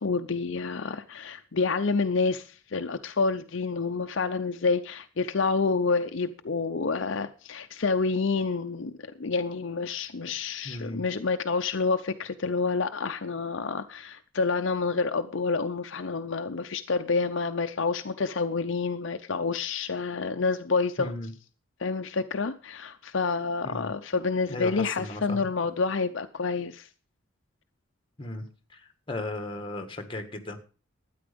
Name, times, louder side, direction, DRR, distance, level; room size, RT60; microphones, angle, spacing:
voice 1, 0.0-8.9 9.2-21.1 21.8-26.9, left 4 dB, 60° left, 0.6 m, -28 dB
voice 2, 10.6-11.0 21.0-21.3 23.6-23.9 24.5-25.5 28.2-28.5 29.1-30.6, left 2 dB, 25° left, 1.6 m, -35 dB
12.5 x 9.6 x 5.2 m
head